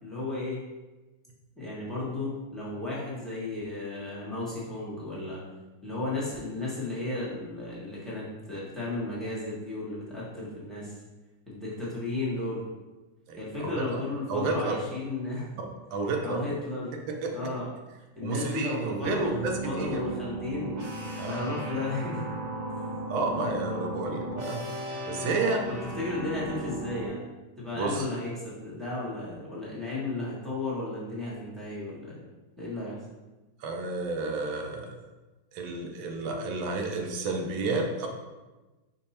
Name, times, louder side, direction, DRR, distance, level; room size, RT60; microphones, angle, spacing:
voice 1, 0.0-0.6 1.6-5.4 5.8-11.0 11.5-12.6 13.4-15.6 16.2-17.0 17.3-17.7 18.1-19.4 19.6-20.9 21.2-22.3 23.5-23.8 25.7-27.2 27.6-32.2 32.6-33.0, left 2 dB, ahead, -8 dB, 0.7 m, -34 dB
voice 2, 13.3-14.0 14.3-14.7 15.9-16.4 17.1-17.5 18.2-20.0 21.2-21.5 23.1-24.7 25.1-25.7 27.7-28.1 33.6-35.0 35.5-38.1, right 3 dB, 75° right, 2 dB, 1.4 m, -31 dB
sound 1, 19.0-27.1, right 1 dB, 50° right, 1.2 m, -36 dB
5.2 x 2.3 x 4.1 m, 1.2 s
omnidirectional pair, 2.2 m